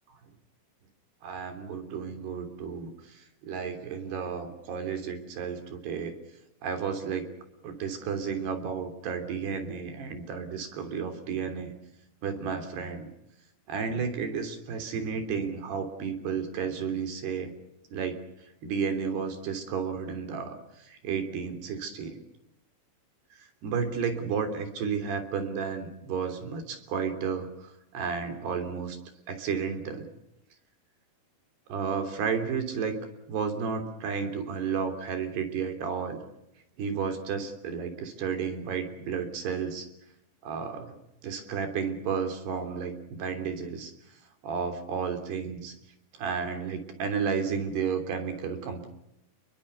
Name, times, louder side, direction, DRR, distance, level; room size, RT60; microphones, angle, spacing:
voice 1, 1.2-6.2 6.6-7.3 7.6-11.7 12.2-13.1 13.7-17.5 17.9-18.2 18.6-22.2 23.6-29.0 29.3-30.1 31.7-33.0 33.3-36.2 36.8-39.9 40.4-41.0 41.2-43.9 44.4-45.7 46.1-48.9, right 6 dB, 65° right, 7 dB, 5.3 m, -32 dB
29.5 x 23.0 x 6.8 m, 0.83 s
omnidirectional pair, 5.2 m